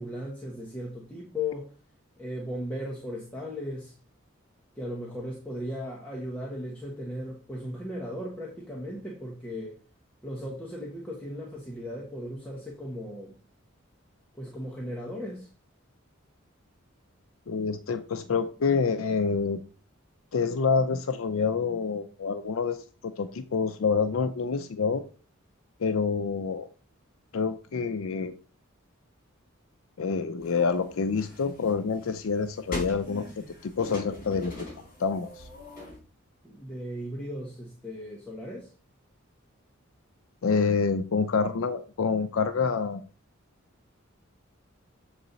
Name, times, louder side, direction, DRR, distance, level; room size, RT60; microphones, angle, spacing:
voice 1, 0.0-1.7 2.2-3.9 4.8-9.8 10.2-13.4 14.4-15.5 36.4-38.7, left 1 dB, 5° left, 1.1 m, -36 dB
voice 2, 17.5-19.6 20.3-25.0 25.8-26.7 27.3-28.3 30.0-33.3 33.6-35.5 40.4-43.0, left 5 dB, 85° left, 0.5 m, -27 dB
sound 1, 30.4-36.0, left 1 dB, 45° left, 2.5 m, -42 dB
7.5 x 3.9 x 4.0 m
head